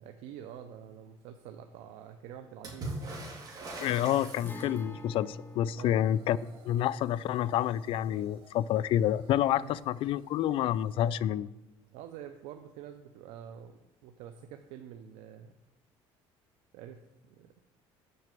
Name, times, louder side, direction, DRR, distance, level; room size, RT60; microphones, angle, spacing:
voice 1, 0.0-2.9 5.8-6.0 9.6-9.8 11.9-15.5 16.7-17.6, right 9 dB, 80° right, 0.7 m, -47 dB
Water / Splash splatter, 2.6-5.0 8.3-8.4 8.7-9.4 10.5-10.6, right 2 dB, 35° right, 3.2 m, -41 dB
voice 2, 3.8-6.4 6.6-11.5, left 11 dB, 55° left, 0.4 m, -28 dB
Guitar, 4.4-12.0 12.3-12.4 14.4-14.5, left 1 dB, 15° left, 0.8 m, -50 dB
sound 1, 5.8-11.2, right 5 dB, 55° right, 1.9 m, -60 dB
7.8 x 5.9 x 7.6 m
cardioid pair, 125°, 11 cm